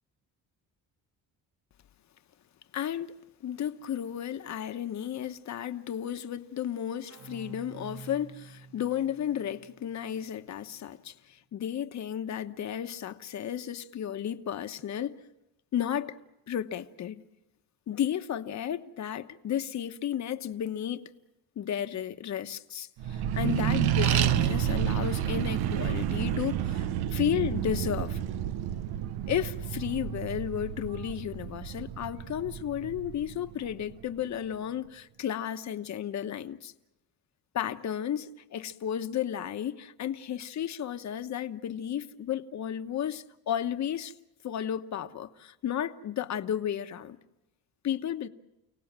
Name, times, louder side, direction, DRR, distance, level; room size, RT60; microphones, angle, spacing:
voice 1, 2.7-3.1 3.4-15.2 15.7-16.2 16.5-17.2 17.9-21.1 21.6-28.2 29.3-36.7 37.5-44.1 44.4-47.2 47.8-48.3, left 10 dB, 50° left, 1.2 m, -33 dB
sound 1, 7.1-10.5, right 4 dB, 40° right, 2.1 m, -49 dB
Accelerating revving vroom, 23.0-33.9, right 11 dB, 90° right, 0.9 m, -30 dB
30.0 x 18.0 x 7.5 m
cardioid pair, 140°, 37 cm